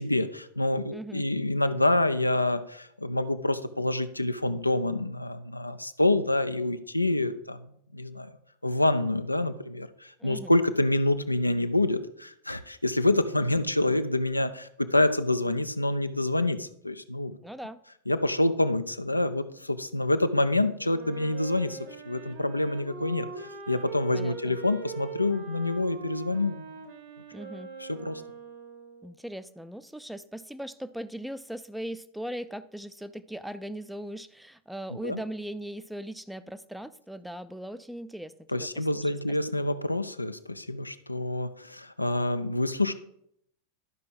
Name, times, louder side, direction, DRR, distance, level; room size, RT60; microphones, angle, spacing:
voice 1, 0.0-7.6 7.9-8.3 8.6-17.4 18.1-21.8 22.0-26.7 27.8-28.2 35.0-35.2 38.5-42.9, left 2 dB, 85° left, 11 dB, 0.5 m, -27 dB
voice 2, 0.9-1.2 10.2-10.6 17.4-17.8 24.1-24.6 27.3-27.7 29.0-39.1, equal, ahead, 13 dB, 0.5 m, -39 dB
Wind instrument woodwind instrument, 20.8-29.2, right 5 dB, 55° right, 1.9 m, -42 dB
12.0 x 5.6 x 3.9 m, 0.73 s
figure-of-eight pair, 90°, 0 cm